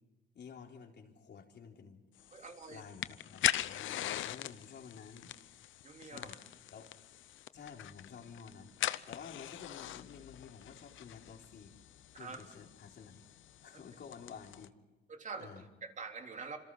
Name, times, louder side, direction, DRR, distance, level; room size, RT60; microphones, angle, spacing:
voice 1, 0.3-2.0 2.7-5.3 6.0-6.4 6.7-6.9 7.5-8.7 9.1-11.8 12.1-13.2 13.6-14.7 15.4-15.6, left 6 dB, 60° left, 2 dB, 4.0 m, -51 dB
sound 1, 2.2-14.7, left 13 dB, 75° left, 0.8 m, -41 dB
voice 2, 2.3-2.8 5.8-6.4 12.2-12.4 15.1-15.5 15.8-16.6, right 4 dB, 40° right, 4 dB, 3.5 m, -45 dB
27.0 x 26.5 x 5.7 m, 1.1 s
cardioid pair, 90°, 20 cm